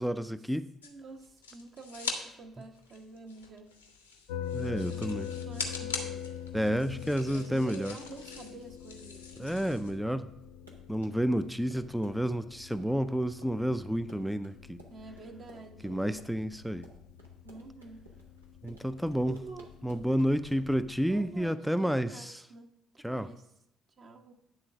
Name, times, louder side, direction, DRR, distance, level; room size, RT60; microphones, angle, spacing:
voice 1, 0.0-0.7 4.5-5.3 6.5-8.0 9.4-10.3 10.9-14.8 15.8-16.9 18.6-19.4 19.8-22.4 23.0-23.3, equal, ahead, 13 dB, 0.4 m, -30 dB
sound 1, 0.8-2.2 2.5-9.9, left 4 dB, 85° left, 0.9 m, -42 dB
voice 2, 0.8-3.8 4.9-6.3 6.7-9.6 14.9-16.1 17.4-18.0 19.1-19.7 21.0-22.7 23.0-23.4 24.0-24.3, right 3 dB, 45° right, 3 dB, 1.0 m, -48 dB
sound 2, 4.3-21.5, left 9 dB, 70° left, 0.5 m, -44 dB
Run, 10.4-20.8, right 2 dB, 90° right, 1.0 m, -55 dB
9.9 x 3.9 x 6.0 m, 0.78 s
figure-of-eight pair, 50°, 0 cm